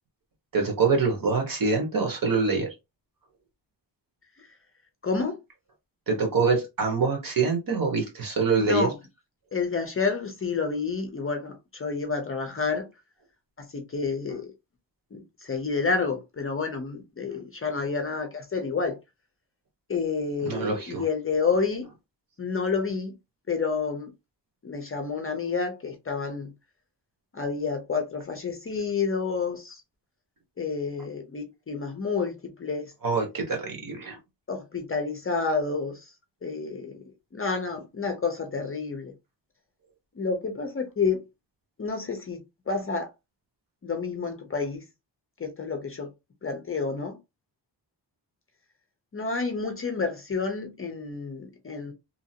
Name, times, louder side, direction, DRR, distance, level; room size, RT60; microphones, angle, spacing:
voice 1, 0.5-2.7 6.1-8.9 20.4-21.0 33.0-34.2, right 4 dB, 50° right, 1.2 m, -25 dB
voice 2, 5.0-5.4 8.6-8.9 9.5-12.9 13.6-14.4 15.1-19.0 19.9-21.9 22.4-23.1 23.5-24.1 24.6-26.5 27.3-29.8 30.6-32.9 34.5-36.1 36.4-37.0 37.3-39.1 40.2-41.2 41.8-42.4 42.7-43.1 43.8-44.8 45.4-46.1 46.4-47.2 49.1-51.9, left 4 dB, 30° left, 0.5 m, -29 dB
2.8 x 2.5 x 2.7 m
wide cardioid pair, 170°, 42 cm